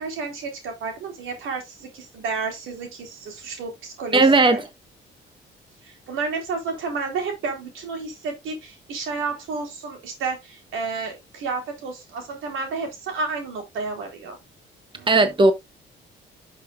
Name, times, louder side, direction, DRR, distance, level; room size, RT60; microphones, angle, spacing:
voice 1, 0.0-4.6 5.8-14.4 14.9-15.2, right 4 dB, 85° right, 3.9 m, -31 dB
voice 2, 4.1-4.6 15.1-15.5, right 3 dB, 25° right, 1.3 m, -16 dB
11.0 x 6.2 x 2.5 m
cardioid pair, 90°, 20 cm